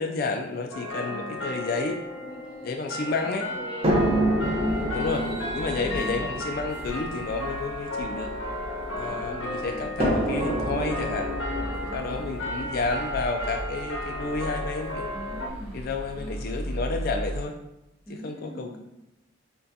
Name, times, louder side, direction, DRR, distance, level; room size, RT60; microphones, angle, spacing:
voice 1, 0.0-2.0 2.6-3.5 4.9-5.3 5.5-8.3 9.0-11.3 11.9-15.1 15.7-17.6 18.1-18.8, left 3 dB, 50° left, 3 dB, 0.3 m, -31 dB
sound 1, 0.7-15.5, left 1 dB, 70° left, 0.7 m, -34 dB
voice 2, 1.1-1.4 2.1-4.6 5.7-6.3 8.9-10.0 11.6-12.3 15.1-15.8 16.1-16.3 18.1-18.8, right 1 dB, 5° right, -5 dB, 1.1 m, -43 dB
sound 2, 3.8-9.1 10.0-14.0 14.9-15.0 15.5-15.6, equal, 30° right, 0.8 m, -29 dB
sound 3, 4.4-17.4, equal, 60° right, 1.1 m, -39 dB
6.3 x 2.2 x 2.7 m, 0.88 s
head